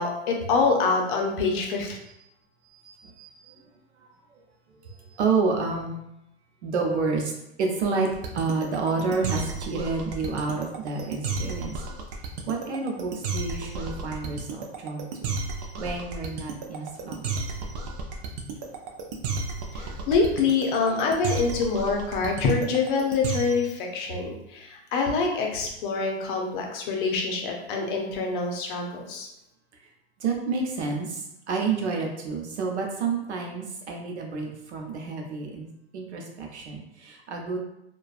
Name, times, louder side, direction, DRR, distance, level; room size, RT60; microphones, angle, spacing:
voice 1, 0.0-2.0 19.7-29.3, left 4 dB, 50° left, 1 dB, 0.6 m, -25 dB
voice 2, 2.8-3.6 5.2-6.0 6.6-7.3 7.6-8.1 8.3-11.7 12.5-15.4 15.8-17.2 30.2-31.2 31.5-35.7 35.9-37.6, right 4 dB, 85° right, 1 dB, 0.7 m, -29 dB
sound 1, 8.1-23.8, right 4 dB, 40° right, 0.4 m, -32 dB
2.4 x 2.2 x 2.4 m, 0.83 s
hypercardioid pair, 125°, 33 cm